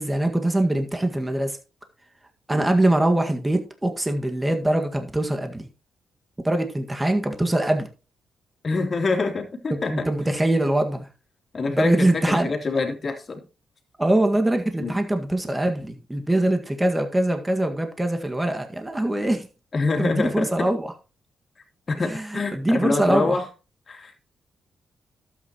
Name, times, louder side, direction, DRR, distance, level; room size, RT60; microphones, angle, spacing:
voice 1, 0.0-1.6 2.5-5.7 6.4-7.9 9.9-11.1 11.7-12.5 14.0-19.5 20.0-20.9 22.1-23.4, right 1 dB, 15° right, 5 dB, 1.8 m, -23 dB
voice 2, 8.6-10.1 11.5-13.4 14.8-15.0 19.7-20.7 21.9-23.5 23.9-24.2, left 3 dB, 45° left, 3 dB, 3.0 m, -26 dB
12.0 x 8.5 x 3.0 m, 0.32 s
supercardioid pair, 60°, 0 cm